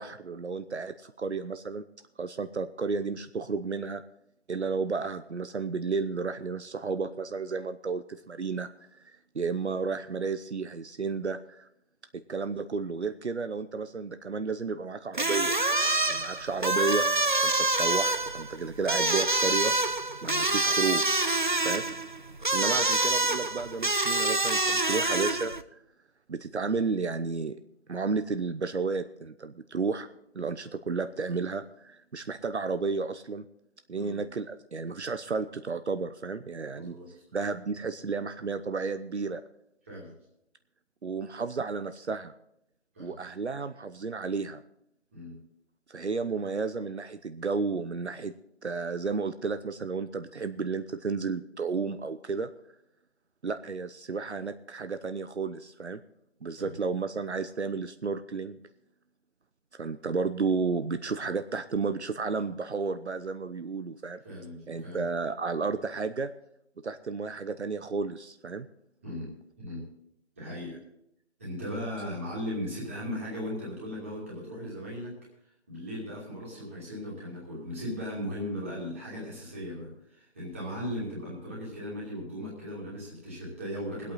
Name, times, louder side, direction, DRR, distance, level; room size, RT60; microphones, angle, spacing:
voice 1, 0.0-1.8 2.2-4.0 4.5-11.7 12.3-15.6 16.1-17.1 17.4-19.7 20.2-21.0 21.6-21.8 22.5-25.5 26.3-27.6 27.9-30.1 30.3-33.4 33.9-37.0 37.3-39.4 41.0-42.3 43.0-44.6 45.9-48.3 48.6-52.5 53.4-56.0 56.4-58.6 59.8-64.2 64.7-66.3 66.8-68.7, right 4 dB, 70° right, 10 dB, 0.9 m, -32 dB
sound 1, 15.1-25.6, right 2 dB, 45° right, 0.6 m, -26 dB
voice 2, 36.7-37.1 39.9-40.1 42.9-43.2 45.1-45.4 56.5-56.7 64.2-65.1 69.0-69.8 70.4-70.8 71.4-75.2 75.7-84.1, equal, 10° right, -6 dB, 2.6 m, -37 dB
21.5 x 8.5 x 4.0 m, 0.78 s
figure-of-eight pair, 180°, 35 cm